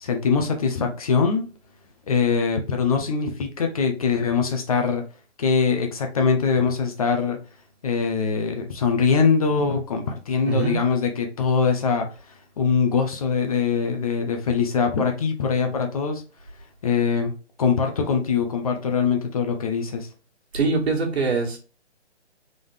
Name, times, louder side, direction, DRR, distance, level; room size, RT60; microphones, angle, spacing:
voice 1, 0.0-1.4 2.1-5.0 5.4-7.4 7.8-16.2 16.8-17.3 17.6-20.1, left 5 dB, 30° left, 4 dB, 0.6 m, -22 dB
voice 2, 10.5-10.8 20.5-21.6, right 4 dB, 65° right, 0 dB, 1.9 m, -23 dB
3.8 x 3.6 x 3.2 m, 0.35 s
figure-of-eight pair, 145°, 35 cm